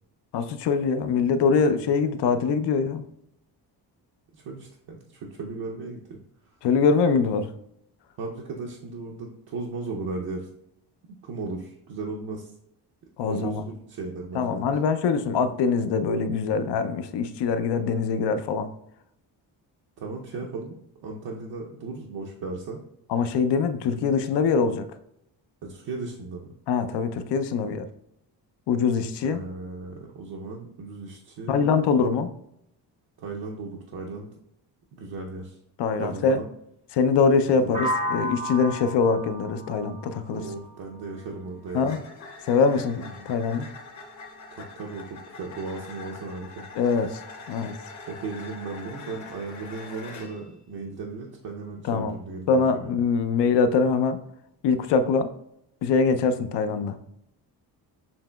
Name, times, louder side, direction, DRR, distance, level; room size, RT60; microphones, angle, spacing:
voice 1, 0.3-3.0 6.6-7.5 13.2-13.6 14.3-18.7 23.1-24.9 26.7-27.9 28.7-29.4 31.5-32.3 35.8-36.4 36.9-40.4 41.7-42.0 42.4-43.7 46.7-47.2 47.5-47.7 51.8-52.2 52.5-54.2 54.6-55.3 55.8-57.0, left 5 dB, 75° left, 10 dB, 0.5 m, -23 dB
voice 2, 4.3-6.2 8.2-10.5 11.2-12.5 13.3-14.7 20.0-20.8 21.0-22.8 25.6-26.5 29.2-31.9 33.2-34.3 34.9-35.6 36.0-36.5 37.6-37.8 40.3-42.0 43.0-43.1 44.5-46.6 48.1-52.9, right 3 dB, 60° right, -1 dB, 0.6 m, -36 dB
sound 1, 37.7-41.6, equal, 15° right, 0.6 m, -33 dB
sound 2, 41.0-50.5, left 3 dB, 45° left, 0.8 m, -44 dB
7.0 x 2.9 x 2.2 m, 0.76 s
cardioid pair, 140°, 42 cm